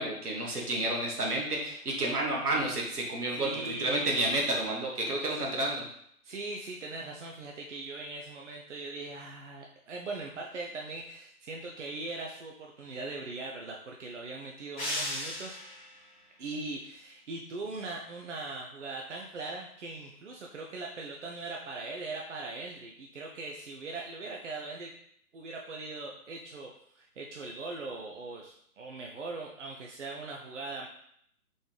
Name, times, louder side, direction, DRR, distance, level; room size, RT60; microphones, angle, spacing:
voice 1, 0.0-5.9, right 1 dB, 75° right, -2 dB, 1.5 m, -30 dB
voice 2, 3.3-4.3 6.2-15.6 16.4-24.9 25.3-30.9, right 3 dB, 50° right, 0 dB, 0.6 m, -40 dB
sound 1, 14.8-16.0, left 1 dB, 10° left, 1.0 m, -35 dB
4.0 x 3.9 x 3.3 m, 0.69 s
figure-of-eight pair, 135°, 46 cm